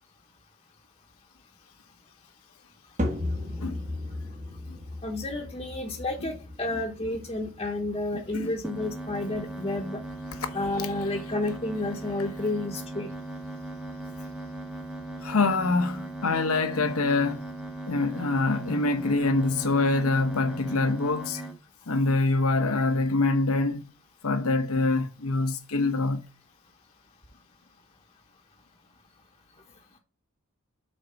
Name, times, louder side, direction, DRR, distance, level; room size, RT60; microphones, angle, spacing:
sound 1, 3.0-19.4, left 1 dB, 35° right, 1.3 m, -39 dB
voice 1, 5.0-10.0 10.5-13.1, left 2 dB, 25° left, 1.0 m, -31 dB
voice 2, 8.1-8.5 10.4-10.5 15.2-17.4 17.9-21.4 21.9-23.9 24.2-26.2, left 3 dB, 90° left, 1.0 m, -25 dB
sound 2, 8.6-21.5, right 2 dB, 5° right, 0.9 m, -38 dB
6.6 x 4.5 x 5.6 m
head